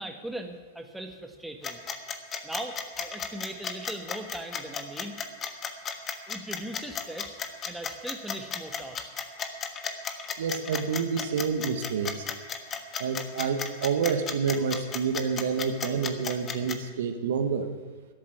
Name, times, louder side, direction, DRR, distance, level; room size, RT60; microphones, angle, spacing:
voice 1, 0.0-1.8 2.4-5.2 6.3-7.4 7.6-9.3, right 1 dB, 5° right, 4 dB, 1.6 m, -39 dB
sound 1, 1.6-16.8, left 6 dB, 25° left, 1.3 m, -34 dB
voice 2, 10.4-12.2 13.0-17.7, right 6 dB, 70° right, 7 dB, 1.3 m, -28 dB
13.0 x 7.5 x 9.8 m, 1.3 s
hypercardioid pair, 105°, 0 cm